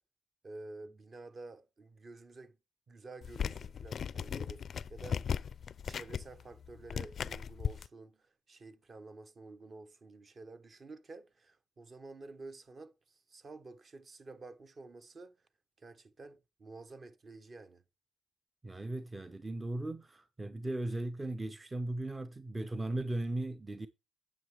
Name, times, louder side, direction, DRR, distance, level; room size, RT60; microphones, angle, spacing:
voice 1, 0.4-2.5 2.9-4.6 4.9-5.3 5.9-15.3 15.8-17.8, right 3 dB, 40° right, 1.1 m, -50 dB
sound 1, 3.2-7.9, left 7 dB, 55° left, 0.4 m, -37 dB
voice 2, 18.6-23.9, right 2 dB, 20° right, 0.6 m, -37 dB
9.3 x 7.4 x 3.3 m
cardioid pair, 90°, 0 cm